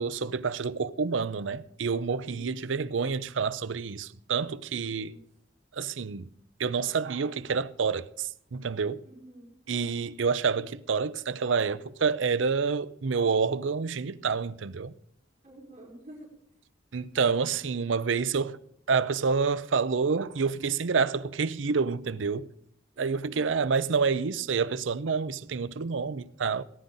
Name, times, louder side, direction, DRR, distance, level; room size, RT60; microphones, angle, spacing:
voice 1, 0.0-5.2 5.7-6.3 6.6-9.0 9.7-14.9 16.9-18.6 18.9-22.5 23.0-26.6, right 5 dB, 80° right, 0.6 m, -28 dB
voice 2, 2.2-2.8 4.9-5.1 9.2-9.6 15.4-16.3 22.9-23.5, right 1 dB, 40° right, 5.0 m, -48 dB
18.5 x 11.5 x 4.0 m
head